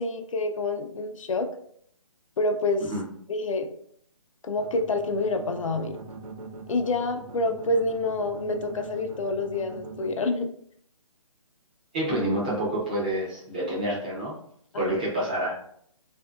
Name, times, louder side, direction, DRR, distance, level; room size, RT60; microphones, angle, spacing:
voice 1, 0.0-1.5 2.4-2.9 3.3-3.7 4.4-6.0 6.7-10.5 14.7-15.0, left 2 dB, 70° left, 5 dB, 0.4 m, -27 dB
sound 1, 4.6-10.1, right 2 dB, 90° right, 0.5 m, -41 dB
voice 2, 11.9-14.4 14.8-15.5, right 1 dB, 15° right, -5 dB, 0.4 m, -28 dB
2.6 x 2.5 x 2.2 m, 0.66 s
hypercardioid pair, 165°, 17 cm